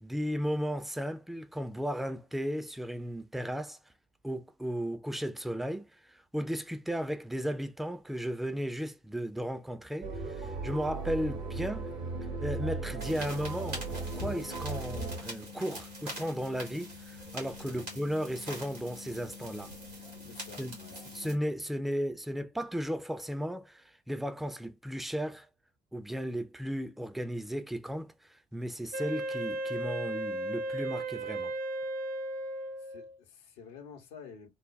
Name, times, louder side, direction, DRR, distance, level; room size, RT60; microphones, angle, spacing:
voice 1, 0.0-3.8 4.2-11.9 12.4-19.7 20.6-20.8 21.1-25.5 25.9-28.1 28.5-31.5, equal, ahead, 0.5 m, -35 dB
sound 1, 10.0-15.2, right 3 dB, 65° right, 1.2 m, -37 dB
sound 2, 13.0-21.3, equal, 85° right, 1.8 m, -43 dB
voice 2, 17.7-18.0 20.3-21.0 32.8-34.5, left 6 dB, 65° left, 0.9 m, -50 dB
Wind instrument woodwind instrument, 28.9-33.2, right 1 dB, 45° right, 0.6 m, -35 dB
3.9 x 2.2 x 3.1 m
figure-of-eight pair, 45°, 20 cm